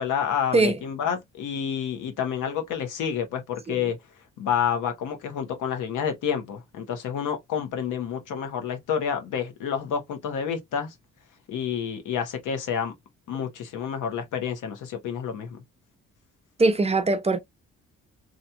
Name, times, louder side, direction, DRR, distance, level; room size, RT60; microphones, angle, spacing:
voice 1, 0.0-4.0 4.4-10.9 11.5-12.9 13.3-15.6, left 8 dB, 80° left, 1.0 m, -29 dB
voice 2, 16.6-17.4, right 3 dB, 20° right, 0.5 m, -21 dB
2.9 x 2.5 x 2.2 m
cardioid pair, 90°, 30 cm